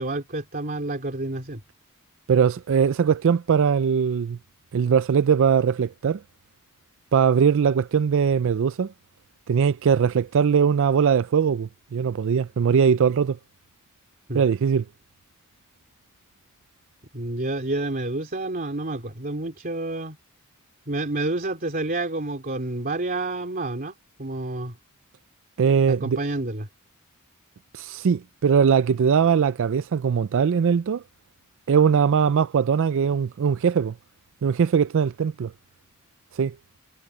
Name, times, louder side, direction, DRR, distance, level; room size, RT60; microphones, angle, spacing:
voice 1, 0.0-1.6 14.3-14.4 17.1-20.2 20.9-24.8 25.9-26.7, right 2 dB, 40° right, 3.1 m, -29 dB
voice 2, 2.3-4.4 4.7-6.2 7.1-8.9 9.5-13.4 14.3-14.8 25.6-26.2 27.7-31.0 31.7-33.9 34.4-35.5 36.3-36.5, right 7 dB, 65° right, 0.4 m, -21 dB
head